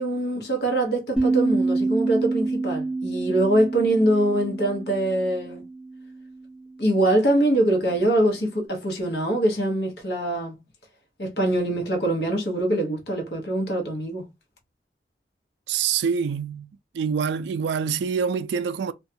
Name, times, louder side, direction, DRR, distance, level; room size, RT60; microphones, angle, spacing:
voice 1, 0.0-5.6 6.8-10.6 11.2-14.3, right 1 dB, 65° left, 1.0 m, -23 dB
sound 1, 1.2-6.3, right 3 dB, 5° right, 0.5 m, -27 dB
voice 2, 15.7-16.7 16.9-18.9, right 6 dB, 80° right, 0.3 m, -25 dB
2.5 x 2.2 x 2.6 m
head